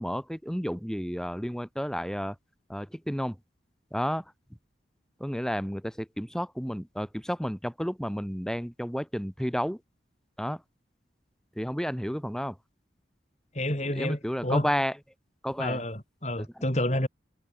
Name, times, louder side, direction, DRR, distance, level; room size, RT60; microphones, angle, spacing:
voice 1, 0.0-2.3 2.7-3.4 3.9-4.2 5.2-9.8 10.4-10.6 11.6-12.5 13.9-15.0 15.4-15.8 16.4-16.5, equal, 5° left, 6.1 m, -31 dB
voice 2, 13.5-14.7 15.6-17.1, left 1 dB, 40° left, 6.7 m, -29 dB
head